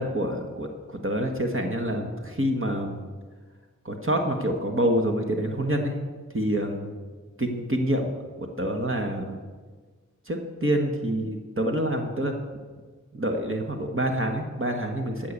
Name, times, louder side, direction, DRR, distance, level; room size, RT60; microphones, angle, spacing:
voice 1, 0.0-3.0 3.8-5.9 6.3-6.9 7.4-8.1 8.4-9.4 10.3-12.3 13.1-15.3, right 1 dB, 40° right, 3 dB, 1.4 m, -27 dB
14.0 x 5.7 x 8.3 m, 1.4 s
wide cardioid pair, 45°, 31 cm